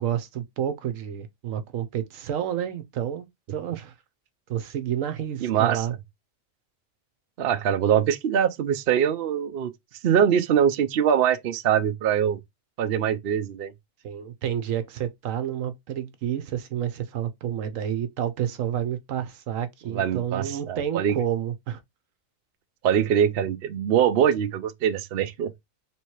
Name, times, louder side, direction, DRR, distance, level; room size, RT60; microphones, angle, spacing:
voice 1, 0.0-3.9 4.5-6.0 14.0-21.8, right 10 dB, 80° right, 1.1 m, -30 dB
voice 2, 5.4-5.9 7.4-9.7 10.0-12.4 12.8-13.7 19.9-21.1 22.8-25.5, right 9 dB, 60° right, 0.7 m, -23 dB
3.5 x 3.0 x 4.5 m
omnidirectional pair, 1.4 m